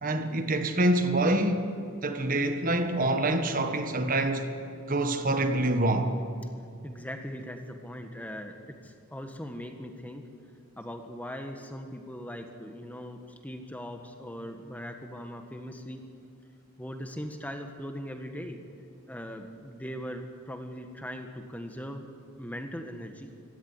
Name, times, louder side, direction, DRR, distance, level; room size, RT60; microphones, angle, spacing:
voice 1, 0.0-1.7 2.0-4.5 4.9-6.1, right 1 dB, 40° right, 1.5 m, -26 dB
voice 2, 6.8-10.2 10.8-16.0 16.8-18.6 19.1-22.0 22.4-23.3, equal, 5° left, 1.4 m, -40 dB
25.0 x 16.5 x 9.7 m
head